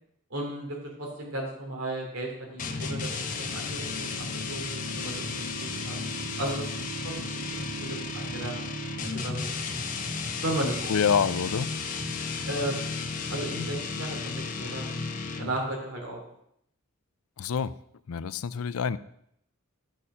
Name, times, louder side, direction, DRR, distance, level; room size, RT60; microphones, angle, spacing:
voice 1, 0.3-4.1 4.5-6.7 7.0-8.5 9.0-9.8 10.4-11.0 12.4-12.8 13.3-15.0 15.4-16.2, right 1 dB, 70° right, 0 dB, 2.9 m, -35 dB
sound 1, 2.6-15.7, left 4 dB, 40° left, 1.1 m, -33 dB
voice 2, 10.9-11.7 17.4-17.7 18.1-19.0, left 7 dB, 80° left, 16 dB, 0.5 m, -26 dB
12.5 x 6.5 x 5.6 m, 0.73 s
head